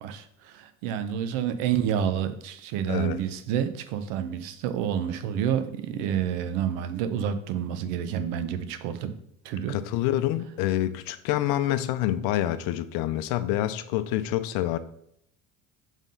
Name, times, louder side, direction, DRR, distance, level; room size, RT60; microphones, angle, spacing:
voice 1, 0.5-9.1 9.4-9.8, right 9 dB, 80° right, 10 dB, 0.8 m, -29 dB
voice 2, 2.9-3.2 9.7-14.8, left 13 dB, 70° left, 12 dB, 0.6 m, -27 dB
5.4 x 3.7 x 5.3 m, 0.72 s
supercardioid pair, 95°, 39 cm